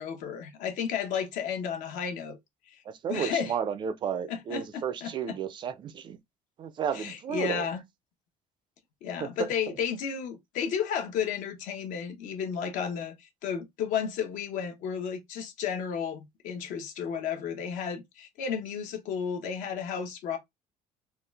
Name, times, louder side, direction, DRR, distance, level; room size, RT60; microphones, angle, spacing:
voice 1, 0.0-2.4 2.7-2.8 3.1-3.5 4.3-5.4 6.9-7.8 9.0-20.4, left 7 dB, 70° left, 1.0 m, -33 dB
voice 2, 2.9-6.2 6.6-7.7 9.2-9.5, right 8 dB, 35° right, 0.4 m, -33 dB
3.8 x 2.4 x 3.3 m
cardioid pair, 160°, 14 cm